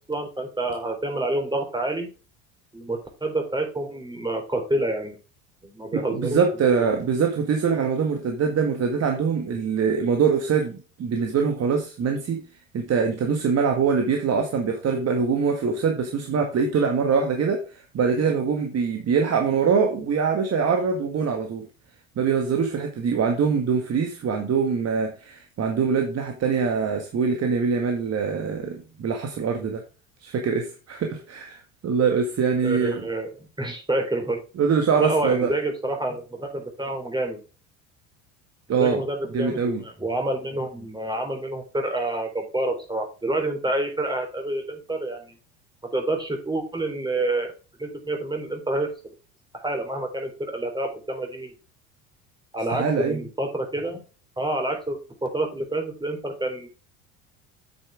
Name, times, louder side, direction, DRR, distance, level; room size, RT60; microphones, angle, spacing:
voice 1, 0.1-2.1 2.7-5.2 5.6-6.4 32.6-33.3 33.6-34.4 35.0-37.4 38.8-45.3 45.9-47.5 47.8-48.9 49.5-51.5 52.5-54.0 54.4-56.7, right 2 dB, 10° right, 3 dB, 3.6 m, -28 dB
voice 2, 5.9-12.4 12.7-21.7 22.2-29.8 30.2-33.0 34.6-35.5 38.7-39.0 39.3-39.8 52.7-53.3, right 6 dB, 40° right, 4 dB, 1.8 m, -23 dB
9.0 x 6.9 x 3.5 m, 0.34 s
hypercardioid pair, 75°, 38 cm